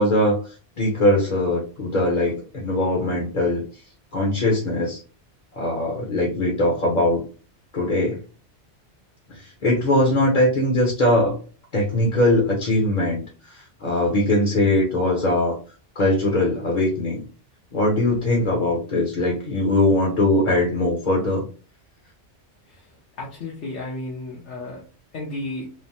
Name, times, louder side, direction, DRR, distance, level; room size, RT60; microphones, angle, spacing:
voice 1, 0.0-3.6 4.1-5.0 5.6-7.2 7.7-8.2 9.3-11.4 11.7-15.6 16.0-17.2 17.7-21.4, left 1 dB, 45° left, -1 dB, 0.8 m, -21 dB
voice 2, 23.2-24.8 25.1-25.7, left 2 dB, 80° left, -4 dB, 1.1 m, -33 dB
3.2 x 2.0 x 2.6 m, 0.37 s
omnidirectional pair, 1.2 m